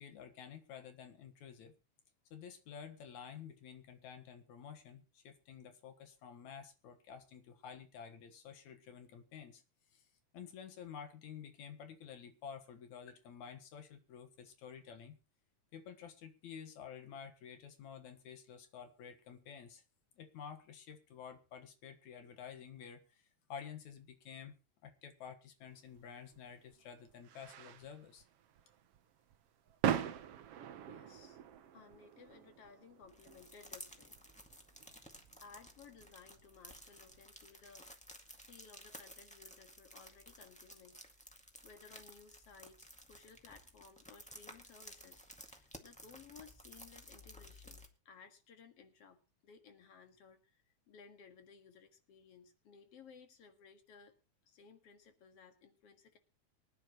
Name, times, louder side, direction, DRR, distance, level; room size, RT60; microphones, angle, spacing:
voice 1, 0.0-1.7 2.3-9.6 9.9-10.1 10.3-15.2 15.7-19.8 20.2-24.6 24.8-28.2, left 7 dB, 80° left, 7 dB, 2.8 m, -51 dB
sound 1, 25.9-37.2, right 10 dB, 65° right, 1.8 m, -43 dB
voice 2, 30.9-31.4 31.7-34.2 35.4-37.9 38.4-41.0 41.6-54.1 54.4-56.2, left 5 dB, 55° left, 6 dB, 2.7 m, -59 dB
sound 2, 33.1-47.9, equal, 5° left, 1.2 m, -55 dB
24.0 x 10.0 x 3.0 m, 0.31 s
omnidirectional pair, 3.3 m